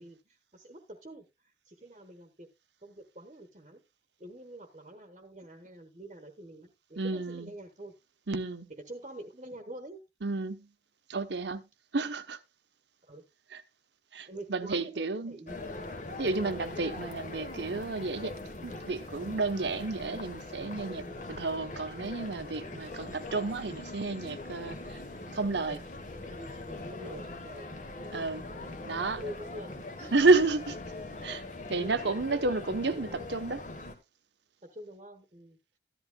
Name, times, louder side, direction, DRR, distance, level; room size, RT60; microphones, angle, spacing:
voice 1, 0.0-2.5 2.8-3.8 4.2-7.9 8.7-10.0 13.0-13.3 14.3-15.8 21.1-21.3 26.9-27.7 28.0-28.3 28.6-28.7 29.1-30.1 30.9-31.0 31.5-32.6 32.9-33.4 34.6-35.6, right 1 dB, 35° right, 1.1 m, -46 dB
voice 2, 7.0-7.5 8.3-8.7 10.2-10.7 11.1-11.7 11.9-12.4 13.5-13.6 14.1-15.4 16.2-25.0 25.3-25.8 28.1-28.4 28.9-29.2 30.1-30.8 31.2-31.4 31.7-33.6, right 3 dB, 70° right, 0.9 m, -31 dB
sound 1, 15.5-33.9, left 2 dB, 40° left, 1.3 m, -42 dB
14.0 x 11.0 x 2.3 m
head